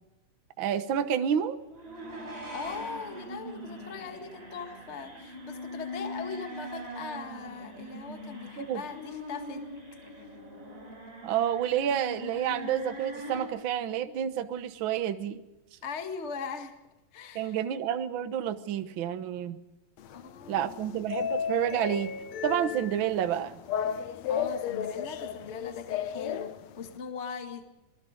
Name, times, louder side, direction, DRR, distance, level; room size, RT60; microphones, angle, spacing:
voice 1, 0.6-1.6 8.6-8.8 11.2-15.4 17.3-19.6 20.5-22.1 22.4-23.6, right 9 dB, 70° right, 9 dB, 1.2 m, -29 dB
sound 1, 1.7-13.4, equal, 15° right, 4.9 m, -42 dB
voice 2, 2.5-9.7 15.8-16.7 17.1-17.6 20.1-20.8 24.3-27.7, left 5 dB, 30° left, 5 dB, 1.3 m, -40 dB
sound 2, 20.0-27.0, left 8 dB, 65° left, 1.8 m, -34 dB
26.5 x 20.0 x 5.2 m, 1.0 s
omnidirectional pair, 3.9 m